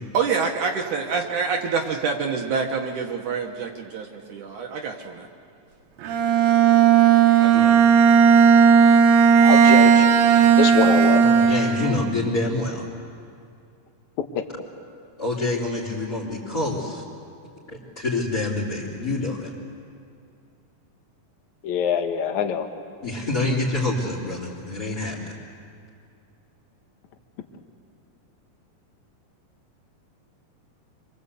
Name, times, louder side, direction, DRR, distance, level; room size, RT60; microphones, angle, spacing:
voice 1, 0.1-5.3 7.4-7.7, right 5 dB, 65° right, 2 dB, 2.4 m, -27 dB
Bowed string instrument, 6.0-12.1, right 7 dB, 80° right, 3.2 m, -15 dB
voice 2, 9.4-10.1 10.6-11.2 14.2-14.5 21.6-22.7, left 8 dB, 60° left, 6 dB, 2.5 m, -24 dB
voice 3, 11.2-12.9 15.2-17.0 17.7-19.5 23.0-25.4, left 2 dB, 25° left, -5 dB, 3.6 m, -27 dB
27.5 x 23.0 x 8.3 m, 2.4 s
omnidirectional pair, 4.2 m